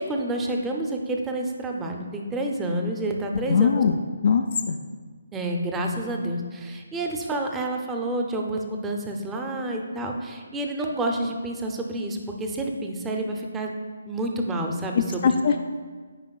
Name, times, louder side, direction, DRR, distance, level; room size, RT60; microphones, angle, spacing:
voice 1, 0.0-3.8 5.3-13.7 14.1-15.3, right 1 dB, 10° right, 2 dB, 0.6 m, -29 dB
voice 2, 3.5-4.0 4.2-4.8 14.9-15.6, left 6 dB, 55° left, 7 dB, 0.3 m, -21 dB
8.9 x 5.1 x 2.4 m, 1.5 s
figure-of-eight pair, 150°, 0 cm